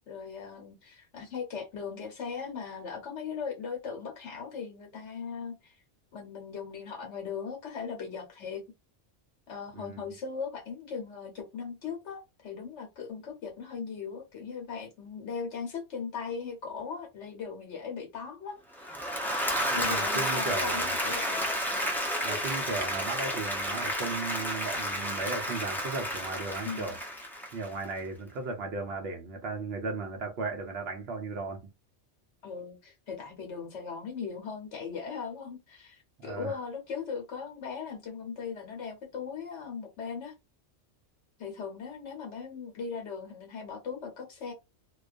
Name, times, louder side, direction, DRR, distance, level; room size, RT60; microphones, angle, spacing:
voice 1, 0.1-5.8 6.1-8.6 9.5-18.6 19.8-21.9 26.6-27.0 32.4-40.3 41.4-44.5, left 6 dB, 70° left, 1.0 m, -39 dB
voice 2, 9.8-10.1 19.7-21.0 22.2-27.0 27.5-31.6 36.2-36.6, right 3 dB, 65° right, 0.7 m, -36 dB
Applause / Crowd, 18.8-27.9, equal, 5° left, 0.3 m, -31 dB
2.3 x 2.2 x 2.4 m
omnidirectional pair, 1.3 m